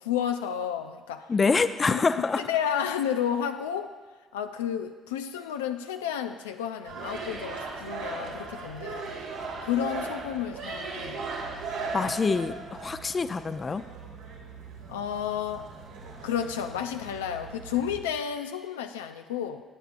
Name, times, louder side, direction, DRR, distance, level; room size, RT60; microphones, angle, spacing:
voice 1, 0.0-1.3 1.9-2.0 2.4-3.9 4.3-9.1 9.6-11.3 12.0-12.1 14.9-15.7 16.2-19.6, left 9 dB, 90° left, 7 dB, 0.4 m, -31 dB
voice 2, 1.3-2.4 11.9-13.8, left 4 dB, 35° left, 11 dB, 0.5 m, -26 dB
sound 1, 6.8-18.0, right 4 dB, 85° right, 1.6 m, -38 dB
16.0 x 7.9 x 2.5 m, 1.3 s
hypercardioid pair, 55°, 0 cm